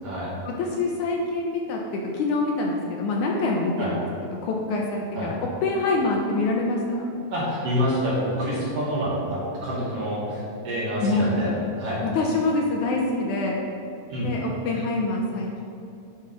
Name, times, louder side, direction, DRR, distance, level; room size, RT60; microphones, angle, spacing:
voice 1, 0.5-7.0 11.0-11.4 12.0-13.6 14.2-15.6, left 2 dB, 75° left, -1 dB, 2.0 m, -25 dB
voice 2, 7.3-12.0 14.1-14.3, equal, 55° right, -7 dB, 1.9 m, -27 dB
9.5 x 4.0 x 5.1 m, 2.7 s
omnidirectional pair, 3.9 m